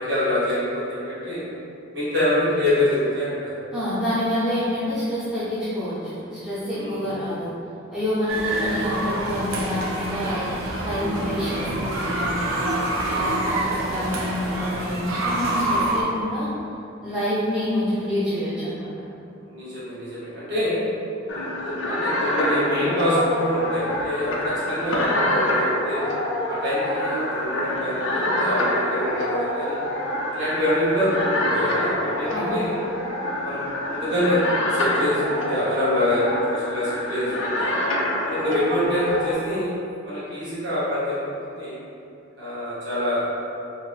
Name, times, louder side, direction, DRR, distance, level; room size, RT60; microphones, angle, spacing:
voice 1, 0.0-1.4 1.9-3.5 6.7-6.9 13.1-13.3 19.4-20.8 21.3-26.0 26.5-29.8 30.3-32.8 33.3-37.7 38.2-39.7 40.0-41.2 41.4-41.7 42.4-43.2, left 1 dB, 55° right, -11 dB, 1.2 m, -25 dB
voice 2, 3.7-7.5 7.9-10.4 10.8-16.5 17.0-18.9 32.3-32.6, left 1 dB, 5° right, -13 dB, 0.6 m, -27 dB
sound 1, 8.3-16.0, right 1 dB, 90° right, 0.5 m, -27 dB
sound 2, 21.3-39.3, left 1 dB, 65° left, 0.4 m, -26 dB
2.8 x 2.5 x 3.1 m, 2.7 s
head